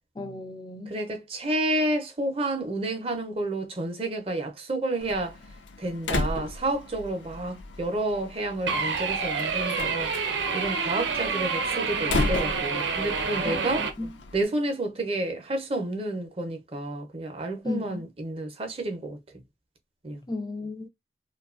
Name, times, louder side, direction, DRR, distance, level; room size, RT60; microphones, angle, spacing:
voice 1, 0.2-0.9 13.4-14.1 17.6-18.0 20.3-20.9, left 2 dB, 25° left, 0.3 m, -34 dB
voice 2, 0.9-5.4 5.8-10.1 10.5-13.9 14.3-19.2 20.0-20.2, right 2 dB, 30° right, 0.6 m, -30 dB
Slam, 5.0-14.4, left 2 dB, 90° left, 0.5 m, -35 dB
sound 1, 8.7-13.9, right 5 dB, 90° right, 0.6 m, -28 dB
2.7 x 2.2 x 2.4 m
head